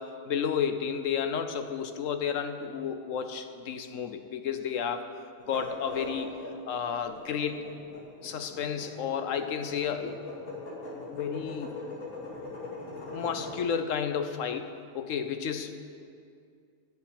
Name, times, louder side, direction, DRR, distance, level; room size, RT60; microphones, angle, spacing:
voice 1, 0.0-5.1 5.5-6.3 6.7-7.7 8.2-10.2 11.1-11.8 13.1-15.7, left 7 dB, 65° left, 9 dB, 1.1 m, -32 dB
sound 1, 5.4-13.6, left 2 dB, 80° left, 2.9 m, -41 dB
11.0 x 7.4 x 8.6 m, 2.3 s
omnidirectional pair, 1.5 m